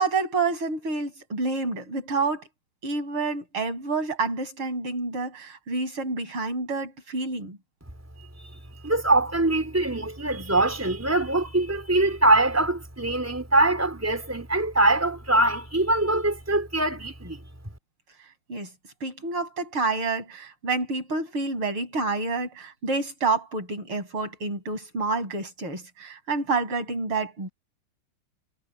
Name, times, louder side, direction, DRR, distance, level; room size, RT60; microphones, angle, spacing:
voice 1, 0.0-2.5 2.8-7.6 18.5-18.7 19.0-27.5, right 3 dB, 85° right, 7.1 m, -28 dB
voice 2, 8.4-17.4, right 2 dB, 5° right, 4.0 m, -23 dB
omnidirectional pair, 2.3 m